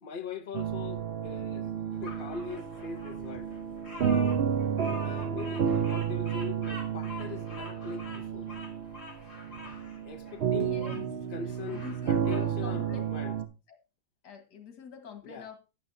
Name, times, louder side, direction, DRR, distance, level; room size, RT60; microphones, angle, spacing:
voice 1, 0.0-1.7 2.0-3.5 4.8-8.5 10.0-10.8 11.3-13.4 15.2-15.5, left 5 dB, 45° left, 0.7 m, -41 dB
sound 1, 0.5-13.4, right 8 dB, 50° right, 0.7 m, -31 dB
Bird vocalization bird call bird song, 2.0-11.0 11.5-12.5, left 3 dB, 70° left, 2.8 m, -47 dB
voice 2, 10.6-11.1 11.5-13.4 13.7-13.8 14.2-15.6, left 6 dB, 85° left, 2.1 m, -45 dB
11.5 x 9.0 x 2.7 m
omnidirectional pair, 1.7 m